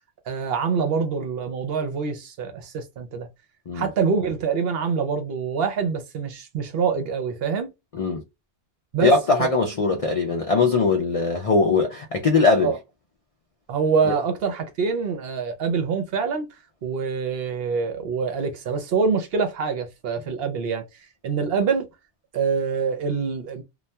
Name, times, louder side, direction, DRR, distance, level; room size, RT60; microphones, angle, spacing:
voice 1, 0.3-3.3 3.7-7.7 8.9-9.1 9.4-9.5 12.6-12.8 13.7-16.5 16.8-20.8 21.2-21.9 22.3-23.6, right 5 dB, 65° right, 0.7 m, -25 dB
voice 2, 9.0-12.7, left 3 dB, 70° left, 0.3 m, -20 dB
2.3 x 2.2 x 2.6 m
omnidirectional pair, 1.2 m